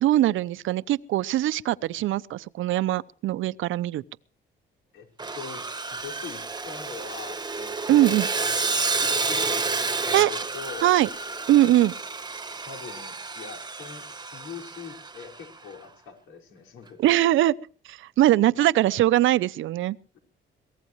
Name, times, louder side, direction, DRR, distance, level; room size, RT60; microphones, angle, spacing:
voice 1, 0.0-4.0 7.9-8.3 10.1-10.3 10.8-11.1 11.5-11.9 17.0-17.5 17.9-20.0, right 14 dB, 80° right, 0.7 m, -21 dB
Sawing, 5.2-15.4, right 4 dB, 20° right, 1.2 m, -30 dB
voice 2, 5.3-5.6 5.9-11.0 12.7-17.2 18.5-18.7 20.1-20.2, left 6 dB, 85° left, 5.5 m, -42 dB
23.5 x 18.0 x 3.1 m
cardioid pair, 90°, 20 cm